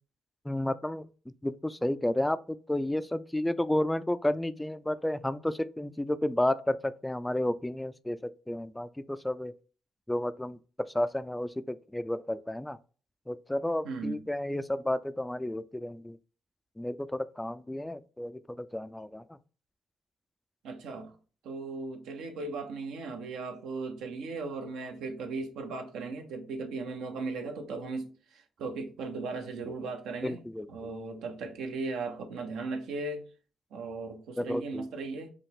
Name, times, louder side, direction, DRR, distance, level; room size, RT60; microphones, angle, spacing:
voice 1, 0.5-1.1 1.4-9.5 10.1-12.8 13.3-16.2 16.8-19.4 30.2-30.7 34.4-34.9, left 1 dB, 10° left, 0.3 m, -32 dB
voice 2, 13.8-14.2 20.6-21.1 21.4-33.2 33.7-35.3, right 3 dB, 80° right, 1.0 m, -37 dB
5.4 x 2.3 x 3.5 m
cardioid pair, 90°, 0 cm